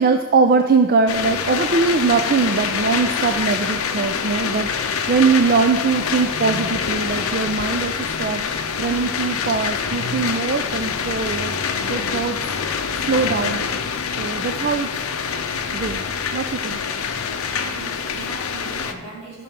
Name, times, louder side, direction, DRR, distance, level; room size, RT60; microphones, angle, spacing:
voice 1, 0.0-12.5 12.9-13.7 14.2-14.9 15.7-16.1 16.3-16.8, right 4 dB, 45° right, 6 dB, 0.4 m, -21 dB
sound 1, 1.1-18.9, left 6 dB, 75° left, 0.6 m, -25 dB
voice 2, 17.5-19.4, right 2 dB, 70° right, -4 dB, 3.4 m, -38 dB
14.0 x 6.0 x 3.6 m, 1.3 s
head